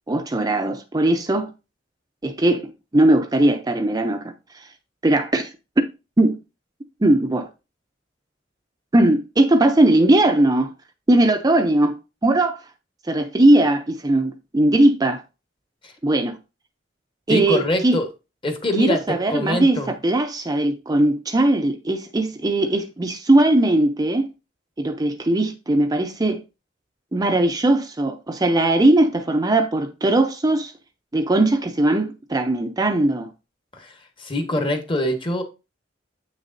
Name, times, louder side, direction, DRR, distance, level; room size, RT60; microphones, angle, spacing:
voice 1, 0.1-1.5 2.2-4.2 4.6-4.7 5.0-5.5 6.2-6.4 7.0-7.5 8.9-10.7 11.1-12.0 12.2-12.6 13.1-15.2 16.0-16.4 17.3-18.0 18.8-24.3 24.8-26.4 27.1-30.7 31.1-33.3, right 1 dB, 20° right, 0.5 m, -19 dB
voice 2, 17.3-18.1 18.4-19.9 33.7-35.4, left 1 dB, 30° left, 1.3 m, -24 dB
8.1 x 6.2 x 2.6 m
head